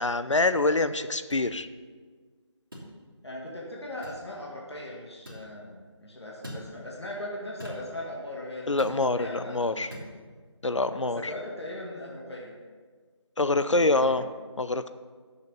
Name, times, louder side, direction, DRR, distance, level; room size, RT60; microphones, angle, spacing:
voice 1, 0.0-1.7 8.7-9.9 10.6-11.3 13.4-14.2 14.6-14.9, left 2 dB, 75° left, 12 dB, 0.6 m, -25 dB
sound 1, 1.3-1.5 2.7-2.9 4.0-4.2 5.3-5.5 6.4-6.7 7.6-7.9 8.8-9.0 9.9-10.1, equal, 45° right, 2.1 m, -42 dB
voice 2, 3.2-10.1 10.9-12.5 13.7-14.3, left 1 dB, 60° left, -3 dB, 1.8 m, -39 dB
6.9 x 6.5 x 6.7 m, 1.5 s
figure-of-eight pair, 165°, 16 cm